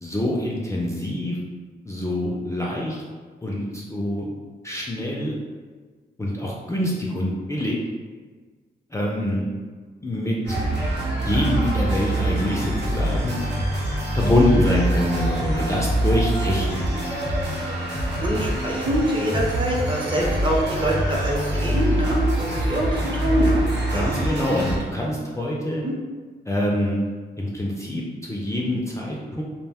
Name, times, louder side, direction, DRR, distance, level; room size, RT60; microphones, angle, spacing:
voice 1, 0.0-1.4 1.9-3.0 3.4-4.3 4.6-5.4 6.2-7.8 8.9-9.5 10.0-10.4 11.3-13.4 14.1-16.8 23.9-25.8 26.5-27.0 27.4-29.4, left 1 dB, 15° left, -3 dB, 0.4 m, -25 dB
sound 1, 10.4-24.8, right 1 dB, 80° right, 0.9 m, -24 dB
voice 2, 18.2-23.6 23.9-24.1 25.8-25.9, right 1 dB, 25° right, -2 dB, 0.7 m, -24 dB
2.3 x 2.1 x 3.4 m, 1.5 s
cardioid pair, 70°, 18 cm